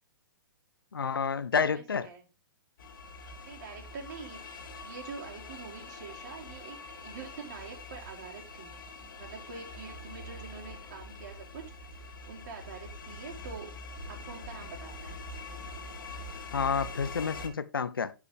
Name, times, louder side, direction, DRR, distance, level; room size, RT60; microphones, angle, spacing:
voice 1, 0.9-2.1 16.5-18.1, left 6 dB, 90° left, 0.6 m, -29 dB
voice 2, 1.6-2.3 3.4-6.8 7.0-8.7 9.2-13.7 14.1-15.2, right 5 dB, 50° right, 3.2 m, -45 dB
sound 1, 2.8-17.5, left 2 dB, 65° left, 1.6 m, -44 dB
11.5 x 5.0 x 3.4 m
hypercardioid pair, 130°, 12 cm